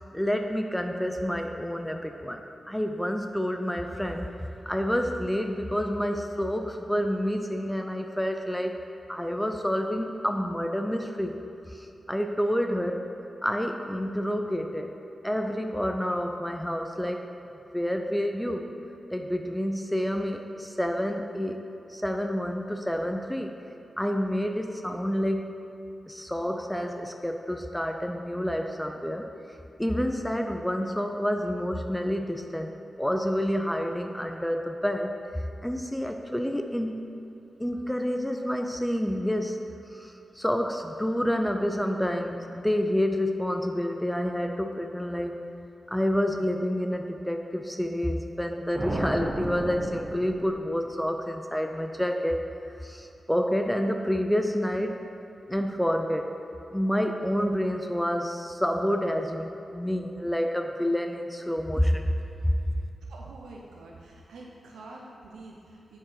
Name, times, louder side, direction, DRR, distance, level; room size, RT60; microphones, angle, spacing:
voice 1, 0.1-8.8 9.1-13.1 13.4-15.0 15.2-17.3 17.7-18.7 19.1-21.6 21.9-23.6 24.0-25.6 26.1-29.3 29.8-32.7 33.0-37.1 37.6-45.4 45.9-52.5 52.8-55.0 55.5-56.4 56.7-62.1 62.4-62.6, equal, 5° left, 4 dB, 0.5 m, -28 dB
sound 1, 48.7-51.0, right 1 dB, 30° right, 1.0 m, -33 dB
voice 2, 63.1-66.0, right 2 dB, 90° right, -2 dB, 0.7 m, -46 dB
7.5 x 4.6 x 5.7 m, 2.8 s
cardioid pair, 45°, 0 cm